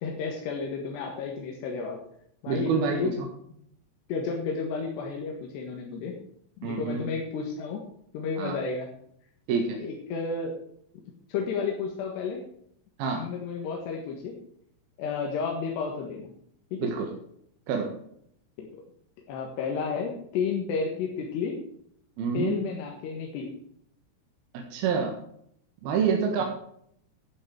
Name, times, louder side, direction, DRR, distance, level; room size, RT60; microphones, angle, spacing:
voice 1, 0.0-2.0 2.4-3.2 4.1-6.1 6.6-7.8 8.1-8.9 9.8-10.5 11.3-12.4 13.2-14.3 15.0-16.3 16.7-16.9 18.6-18.7 19.3-21.6 22.3-23.5 26.4-26.5, left 5 dB, 85° left, 0 dB, 3.7 m, -32 dB
voice 2, 2.5-3.3 6.6-7.0 8.4-8.6 9.5-9.8 13.0-13.3 16.8-17.1 17.7-17.9 22.2-22.5 24.5-25.1 25.8-26.4, right 6 dB, 70° right, 2 dB, 3.2 m, -27 dB
12.0 x 9.3 x 4.6 m, 0.68 s
omnidirectional pair, 4.7 m